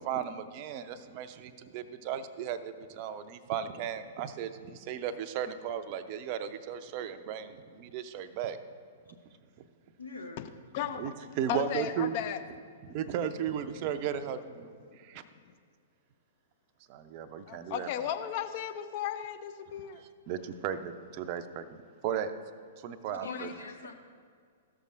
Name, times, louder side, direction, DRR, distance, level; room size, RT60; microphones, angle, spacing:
voice 1, 0.0-8.6 11.0-12.1 12.8-14.7 15.0-15.2 16.9-18.1 20.0-22.3 22.8-23.5, right 9 dB, 40° right, 10 dB, 0.5 m, -36 dB
voice 2, 10.0-10.5 23.2-23.9, left 3 dB, 80° left, 1 dB, 1.1 m, -43 dB
voice 3, 11.5-12.4 17.5-20.0 23.2-23.5, left 10 dB, 40° left, 8 dB, 0.5 m, -35 dB
15.0 x 6.7 x 2.5 m, 2.1 s
figure-of-eight pair, 105°, 0 cm